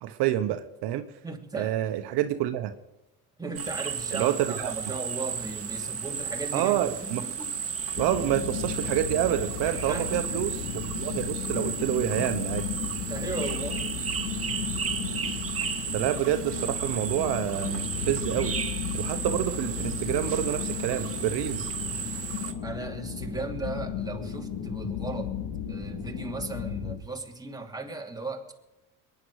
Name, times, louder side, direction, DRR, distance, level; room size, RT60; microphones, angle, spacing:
voice 1, 0.0-1.1 1.5-2.7 4.1-4.7 6.5-7.2 8.0-10.5 10.8-12.7 15.9-18.5 18.9-21.7, right 12 dB, 70° right, 9 dB, 1.1 m, -28 dB
voice 2, 1.2-1.8 3.4-7.5 9.9-10.4 13.0-13.8 22.6-25.4 25.7-28.5, right 3 dB, 10° right, 1 dB, 2.7 m, -36 dB
sound 1, 3.5-22.5, right 6 dB, 35° right, 1.8 m, -34 dB
sound 2, 7.9-27.0, left 8 dB, 65° left, 2.3 m, -35 dB
22.5 x 10.5 x 4.9 m, 1.0 s
supercardioid pair, 70°, 42 cm